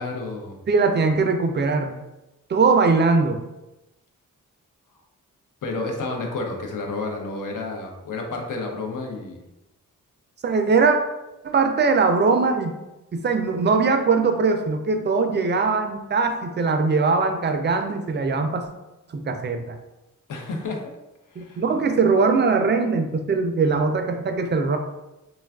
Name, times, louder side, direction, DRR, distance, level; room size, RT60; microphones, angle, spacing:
voice 1, 0.0-0.6 5.6-9.4 20.3-20.9 21.3-21.6, left 3 dB, 70° left, 2 dB, 0.6 m, -30 dB
voice 2, 0.7-2.0 2.5-3.4 10.4-11.0 11.4-12.7 13.1-18.7 19.1-19.8 21.4-24.8, right 4 dB, 35° right, 6 dB, 0.4 m, -21 dB
3.2 x 2.3 x 2.2 m, 0.96 s
cardioid pair, 70°, 32 cm